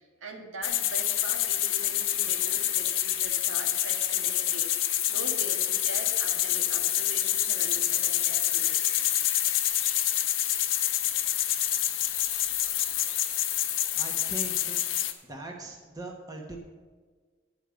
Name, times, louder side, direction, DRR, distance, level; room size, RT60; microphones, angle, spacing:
voice 1, 0.0-4.7 5.1-8.8, right 2 dB, 80° right, 0 dB, 1.8 m, -42 dB
sound 1, 0.6-15.1, left 12 dB, 70° left, 0.8 m, -27 dB
voice 2, 14.0-14.8 15.3-16.6, right 2 dB, 20° right, 0 dB, 1.1 m, -40 dB
11.0 x 5.0 x 8.1 m, 1.5 s
head